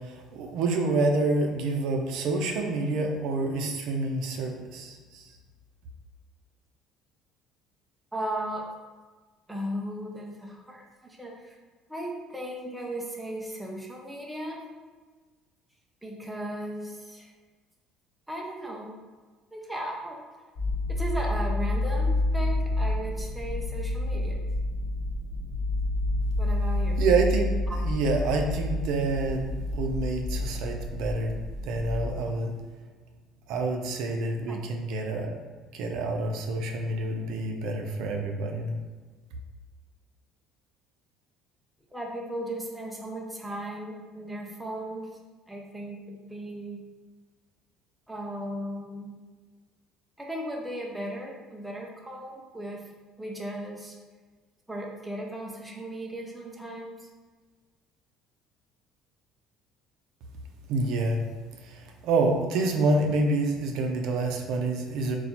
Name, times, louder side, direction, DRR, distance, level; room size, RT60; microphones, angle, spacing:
voice 1, 0.0-5.3 27.0-27.5 27.8-31.4 31.6-32.6 33.5-35.4 35.7-38.8 60.7-61.2 61.6-65.2, right 3 dB, 60° right, 3 dB, 0.5 m, -27 dB
voice 2, 8.1-8.7 9.5-11.6 11.9-14.7 16.0-17.3 18.3-18.9 19.5-20.2 20.9-24.4 26.4-27.0 27.7-27.9 34.5-34.6 41.9-45.1 45.5-46.8 48.1-49.2 50.2-52.9 53.2-54.0 54.7-57.1, right 1 dB, 5° right, -1 dB, 0.4 m, -36 dB
sound 1, 20.6-32.1, left 2 dB, 45° left, 1.2 m, -29 dB
4.2 x 2.3 x 4.2 m, 1.4 s
cardioid pair, 165°, 0 cm